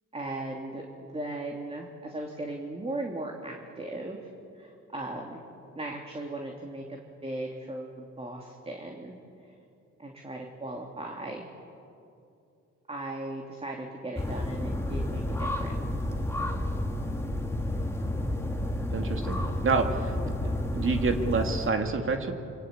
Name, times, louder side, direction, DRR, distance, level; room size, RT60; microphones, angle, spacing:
voice 1, 0.1-4.2 4.5-5.4 5.7-9.1 9.4-9.5 10.0-11.4 12.9-15.8, right 2 dB, 20° right, 0 dB, 3.2 m, -37 dB
sound 1, 14.2-21.7, left 1 dB, 10° left, 2.6 m, -31 dB
voice 2, 18.9-20.3 20.7-22.3, right 4 dB, 45° right, 4 dB, 2.6 m, -28 dB
26.0 x 25.0 x 8.9 m, 2.6 s
cardioid pair, 90°, 30 cm